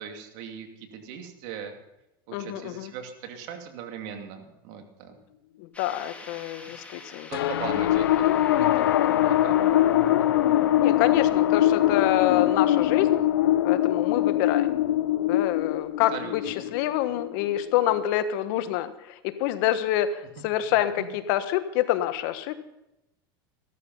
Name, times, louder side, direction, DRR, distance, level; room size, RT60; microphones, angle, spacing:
voice 1, 0.0-1.8 2.3-5.2 6.9-7.0 7.3-8.8 9.2-9.6 16.1-16.5 21.0-21.1, right 7 dB, 60° right, 5 dB, 2.6 m, -39 dB
voice 2, 2.3-2.9 5.6-7.5 10.8-13.2 13.6-14.8 15.2-22.6, left 12 dB, 65° left, 11 dB, 1.4 m, -27 dB
sound 1, 5.7-13.2, left 2 dB, 10° left, 2.5 m, -39 dB
sound 2, 7.3-18.0, left 13 dB, 90° left, 0.5 m, -23 dB
15.0 x 13.5 x 5.6 m, 0.89 s
supercardioid pair, 120°, 12 cm